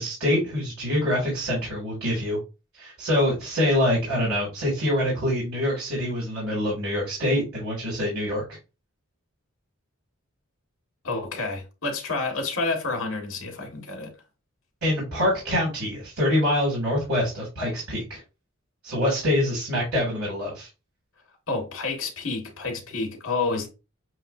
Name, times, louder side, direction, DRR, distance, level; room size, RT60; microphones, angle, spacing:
voice 1, 0.0-2.4 2.8-8.4 14.8-18.2 18.8-20.7, left 1 dB, 90° right, 2.5 m, -25 dB
voice 2, 11.0-14.1 21.5-23.7, left 3 dB, 70° left, 1.8 m, -29 dB
7.5 x 2.6 x 2.6 m
head